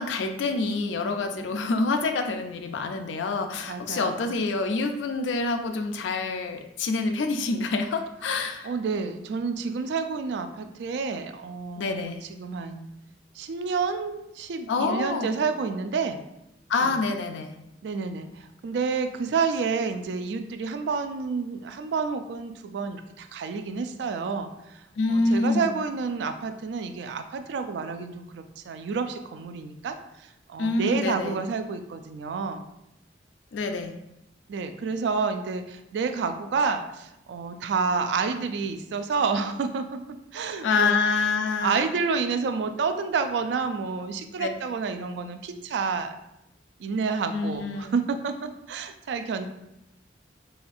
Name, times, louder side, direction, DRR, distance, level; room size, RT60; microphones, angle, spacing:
voice 1, 0.0-8.7 11.8-12.2 14.7-15.4 16.7-17.5 25.0-25.7 30.6-31.4 33.5-33.9 40.6-41.8 44.4-44.5 47.3-47.9, left 3 dB, 85° left, 6 dB, 0.4 m, -27 dB
voice 2, 3.7-4.4 8.6-12.9 13.4-16.2 16.8-17.0 17.8-24.8 25.1-32.6 34.5-40.0 40.3-40.9 41.6-46.1 46.8-49.5, right 5 dB, 70° right, 8 dB, 0.3 m, -29 dB
4.1 x 2.3 x 2.5 m, 0.85 s
head